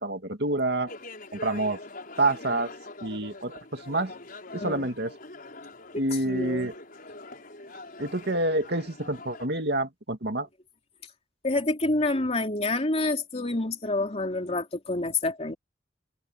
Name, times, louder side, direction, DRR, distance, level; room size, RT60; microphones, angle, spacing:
voice 1, 0.0-0.9 1.4-1.8 2.2-2.7 3.0-4.1 4.5-5.1 5.9-6.7 8.0-10.5, right 2 dB, 65° right, 2.3 m, -27 dB
sound 1, 0.9-9.5, left 2 dB, 55° left, 5.7 m, -44 dB
voice 2, 4.6-4.9 5.9-6.7 11.4-15.5, left 2 dB, 35° left, 3.1 m, -28 dB
head